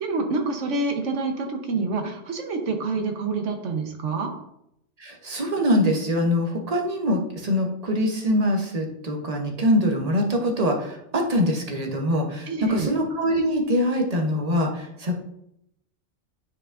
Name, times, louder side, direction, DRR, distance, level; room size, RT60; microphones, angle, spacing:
voice 1, 0.0-4.3 12.5-12.9, right 3 dB, 90° right, 4 dB, 1.3 m, -27 dB
voice 2, 5.0-15.2, equal, 35° right, 2 dB, 1.0 m, -23 dB
9.6 x 4.7 x 2.5 m, 0.78 s
omnidirectional pair, 1.2 m